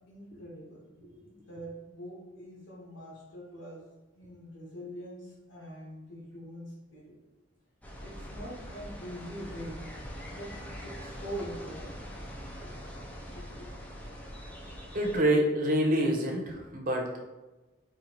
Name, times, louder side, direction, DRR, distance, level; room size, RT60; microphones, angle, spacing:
voice 1, 0.0-3.9 4.1-7.2 8.0-9.9 10.3-12.0 12.6-12.7 13.2-14.0, equal, 60° left, -6 dB, 1.4 m, -44 dB
sound 1, 7.8-15.2, equal, 10° left, 0.4 m, -43 dB
voice 2, 14.9-17.2, equal, 45° right, 1 dB, 0.7 m, -27 dB
4.4 x 2.3 x 4.0 m, 1.1 s
head